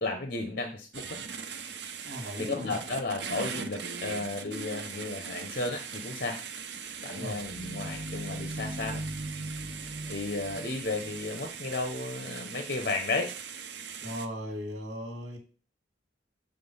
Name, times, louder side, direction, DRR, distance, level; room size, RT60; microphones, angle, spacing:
voice 1, 0.0-1.2 2.5-6.4 7.0-9.0 10.1-13.3, left 3 dB, 50° left, 5 dB, 1.0 m, -33 dB
sound 1, 0.9-14.3, right 6 dB, 65° right, 0.8 m, -40 dB
voice 2, 2.0-2.8 7.1-7.4 14.0-15.4, equal, 80° right, 2 dB, 2.7 m, -37 dB
sound 2, 6.5-12.0, right 1 dB, 35° right, 1.3 m, -40 dB
7.7 x 3.7 x 5.5 m, 0.37 s
head